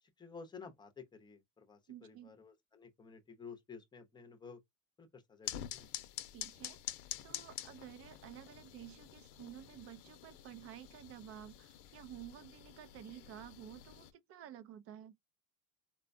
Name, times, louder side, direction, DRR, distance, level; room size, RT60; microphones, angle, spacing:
voice 1, 0.0-4.6 5.0-5.9, left 5 dB, 10° left, 0.6 m, -53 dB
voice 2, 1.9-2.3 6.3-6.8 7.2-15.2, right 11 dB, 35° right, 0.4 m, -52 dB
sound 1, 5.5-14.1, left 12 dB, 75° left, 0.7 m, -48 dB
4.3 x 2.2 x 2.5 m
cardioid pair, 165°, 41 cm